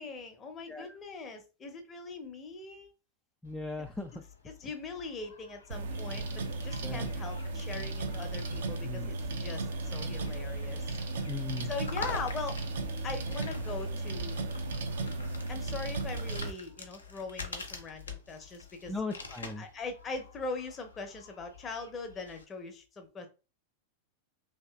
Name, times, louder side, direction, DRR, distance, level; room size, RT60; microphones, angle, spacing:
voice 1, 0.0-2.9 4.5-10.9 11.7-12.6 13.0-14.4 15.5-18.9 19.6-23.3, left 4 dB, 25° left, 5 dB, 0.7 m, -41 dB
sound 1, 3.4-22.4, left 4 dB, 75° left, 0.6 m, -48 dB
voice 2, 3.4-4.2 6.8-7.1 8.8-9.1 11.2-11.7 18.9-19.7, left 3 dB, 5° left, 2 dB, 0.3 m, -38 dB
sound 2, 5.7-16.5, right 2 dB, 60° right, 0.5 m, -35 dB
3.0 x 2.8 x 2.3 m, 0.32 s
figure-of-eight pair, 90°, 0 cm